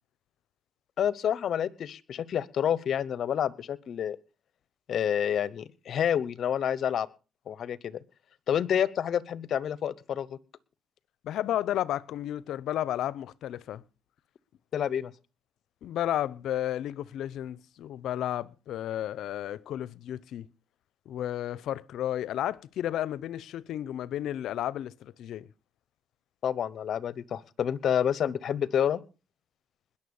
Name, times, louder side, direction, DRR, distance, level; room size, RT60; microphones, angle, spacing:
voice 1, 1.0-4.2 4.9-7.1 7.5-8.0 8.5-10.4 14.7-15.1 26.4-29.0, left 9 dB, 55° left, 1.0 m, -28 dB
voice 2, 11.2-13.8 15.8-20.5 21.1-25.5, left 12 dB, 70° left, 0.7 m, -32 dB
20.5 x 7.1 x 7.1 m
cardioid pair, 115°, 0 cm